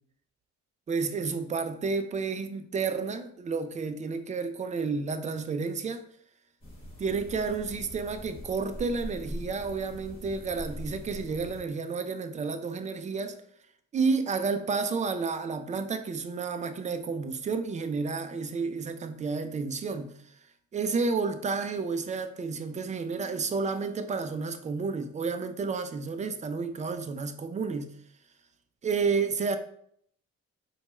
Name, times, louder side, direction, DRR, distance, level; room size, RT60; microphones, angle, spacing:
voice 1, 0.9-6.0 7.0-13.4 13.9-20.1 20.7-27.9 28.8-29.6, right 4 dB, 25° right, 0.3 m, -31 dB
sound 1, 6.6-11.6, equal, 20° left, 1.4 m, -42 dB
4.2 x 2.3 x 3.0 m
cardioid pair, 90°, 30 cm